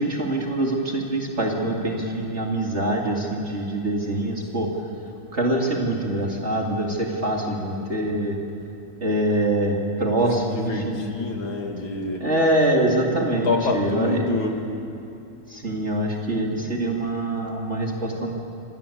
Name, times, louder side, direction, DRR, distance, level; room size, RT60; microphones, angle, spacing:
voice 1, 0.0-4.7 5.3-8.4 9.0-11.0 12.2-14.3 15.5-18.3, right 1 dB, 35° right, 0 dB, 2.7 m, -24 dB
voice 2, 10.1-12.2 13.0-14.7, left 3 dB, 75° left, 2 dB, 3.1 m, -28 dB
26.0 x 18.5 x 8.6 m, 2.7 s
omnidirectional pair, 2.2 m